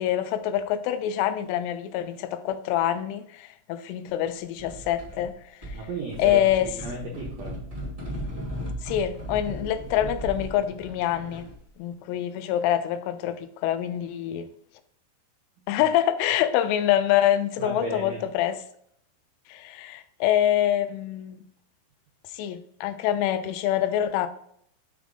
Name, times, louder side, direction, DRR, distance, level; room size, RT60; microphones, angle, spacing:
voice 1, 0.0-5.8 6.2-6.7 8.8-11.5 11.8-14.5 15.7-18.6 19.5-21.4 22.3-24.3, left 11 dB, 85° left, 3.0 m, -25 dB
sound 1, 4.6-5.3 5.6-11.6, equal, 20° right, 0.8 m, -36 dB
voice 2, 5.7-7.6 15.7-15.8 17.6-18.2, right 2 dB, 80° right, 2.0 m, -35 dB
5.9 x 5.2 x 3.6 m
omnidirectional pair, 5.6 m